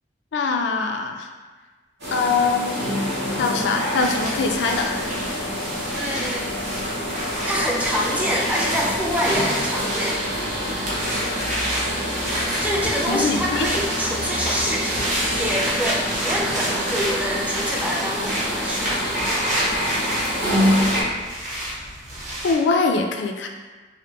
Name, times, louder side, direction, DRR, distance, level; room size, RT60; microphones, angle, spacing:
voice 1, 0.3-1.3 2.1-2.8 3.4-5.0 13.1-13.7 22.4-23.5, left 4 dB, 90° left, 4 dB, 0.3 m, -23 dB
sound 1, 2.0-21.0, equal, 75° right, 1.2 m, -26 dB
sound 2, 4.0-22.6, equal, 45° right, 0.9 m, -30 dB
voice 2, 5.9-6.5 7.5-10.2 12.6-15.1 15.3-19.0, equal, 10° right, -3 dB, 0.4 m, -26 dB
3.1 x 2.5 x 2.9 m, 1.3 s
head